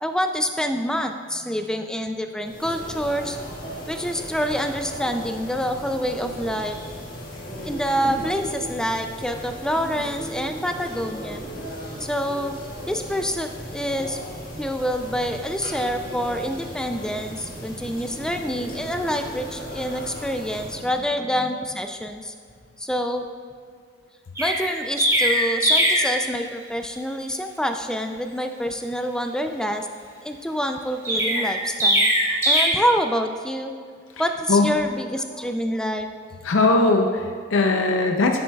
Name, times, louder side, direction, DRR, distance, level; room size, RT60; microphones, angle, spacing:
voice 1, 0.0-3.4 3.9-6.8 7.6-11.4 12.0-12.6 12.9-14.2 14.6-22.3 22.8-23.2 24.4-29.9 30.2-32.1 32.5-33.7 34.2-36.1, equal, 5° left, 6 dB, 0.3 m, -27 dB
sound 1, 2.4-21.0, equal, 45° left, 1.7 m, -36 dB
Chirp tweet, 24.3-26.1 31.0-32.6, equal, 15° right, 1.8 m, -20 dB
voice 2, 34.2-34.7 36.4-38.4, left 3 dB, 85° left, 3 dB, 0.5 m, -20 dB
10.5 x 7.7 x 2.3 m, 2.1 s
head